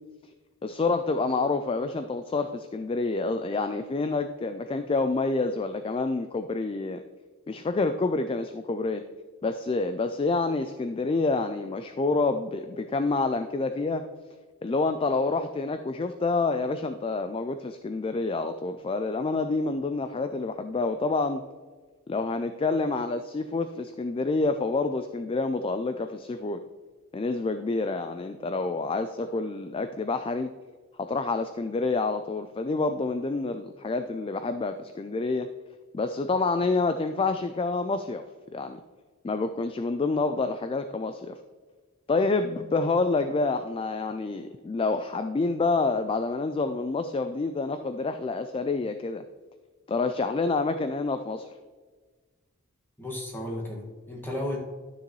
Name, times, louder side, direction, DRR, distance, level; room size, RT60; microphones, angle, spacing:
voice 1, 0.6-7.0 7.5-9.0 9.4-14.1 14.6-21.4 22.1-26.6 27.1-30.5 31.0-35.5 35.9-38.2 38.5-38.8 39.2-41.4 42.1-49.2 49.9-51.5, left 3 dB, 25° left, 9 dB, 0.3 m, -28 dB
voice 2, 53.0-54.6, left 1 dB, 10° left, -3 dB, 1.8 m, -34 dB
12.0 x 6.7 x 3.1 m, 1.4 s
head